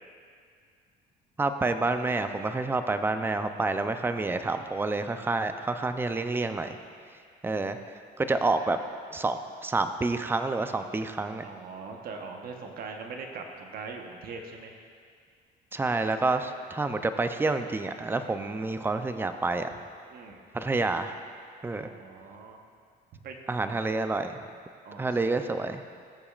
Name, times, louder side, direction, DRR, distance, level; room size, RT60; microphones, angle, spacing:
voice 1, 1.4-6.8 7.4-7.8 8.2-8.8 9.1-11.4 15.7-19.7 20.5-21.2 21.6-21.9 23.5-24.4 25.0-25.8, right 3 dB, 15° right, 8 dB, 0.5 m, -28 dB
voice 2, 11.4-14.8 20.1-20.5 21.7-22.6 23.2-23.4 24.8-25.6, right 4 dB, 60° right, 3 dB, 1.1 m, -41 dB
19.0 x 6.9 x 2.5 m, 2.1 s
cardioid pair, 110°, 17 cm